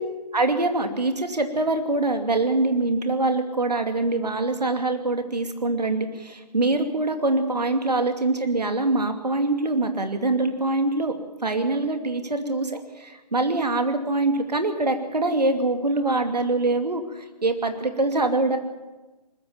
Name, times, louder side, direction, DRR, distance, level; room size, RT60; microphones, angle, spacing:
voice 1, 0.3-11.1 11.4-18.6, right 2 dB, 70° right, 6 dB, 2.6 m, -24 dB
20.5 x 14.5 x 8.9 m, 1.2 s
figure-of-eight pair, 140°, 21 cm